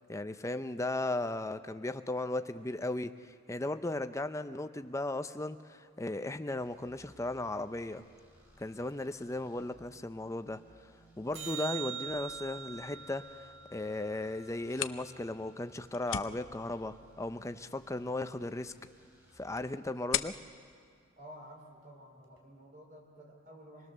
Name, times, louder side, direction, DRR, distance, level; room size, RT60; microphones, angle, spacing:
voice 1, 0.1-8.0 8.6-10.6 11.2-18.7 19.4-20.3, left 2 dB, 15° left, 10 dB, 0.6 m, -36 dB
sound 1, 6.6-19.8, equal, 15° right, 4.6 m, -62 dB
sound 2, 11.3-15.8 22.4-22.5, right 8 dB, 65° right, 3.4 m, -44 dB
sound 3, 14.5-22.0, left 10 dB, 70° left, 0.6 m, -42 dB
voice 2, 21.1-23.9, equal, 40° right, 1 dB, 4.0 m, -52 dB
26.5 x 20.0 x 6.7 m, 2.1 s
head